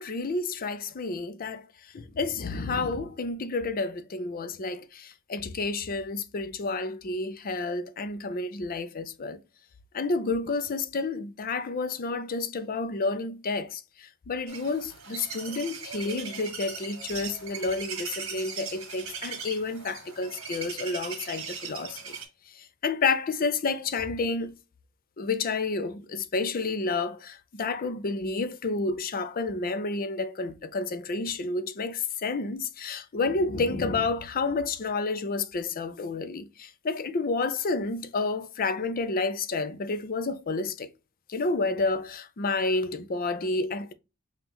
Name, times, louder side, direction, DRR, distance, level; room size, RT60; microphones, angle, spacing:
voice 1, 0.0-1.7 1.9-9.4 9.9-22.2 22.6-24.5 25.2-40.9 41.3-43.9, left 3 dB, 40° left, 0.5 m, -30 dB
sound 1, 14.5-22.3, right 5 dB, 70° right, 1.6 m, -39 dB
5.3 x 2.4 x 2.9 m
head